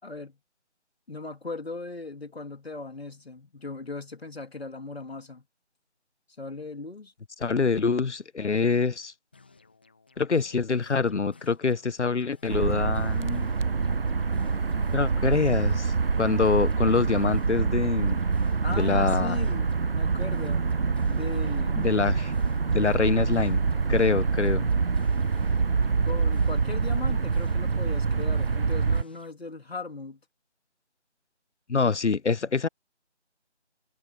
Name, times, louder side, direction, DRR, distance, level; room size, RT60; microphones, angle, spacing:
voice 1, 0.0-0.4 1.1-5.4 6.4-7.1 18.6-20.7 21.1-21.8 26.0-30.2, left 3 dB, 60° left, 3.3 m, -38 dB
voice 2, 7.4-9.1 10.2-13.5 14.9-18.2 18.7-19.4 21.8-22.3 22.7-23.6 23.9-24.7 31.7-32.7, left 4 dB, 80° left, 0.9 m, -25 dB
sound 1, 9.3-11.9 12.2-15.9 16.2-19.9 20.2-23.9 24.2-27.9 28.2-29.3, left 4 dB, 10° left, 1.0 m, -57 dB
sound 2, 12.5-29.0, right 5 dB, 55° right, 0.7 m, -26 dB
figure-of-eight pair, 165°, 35 cm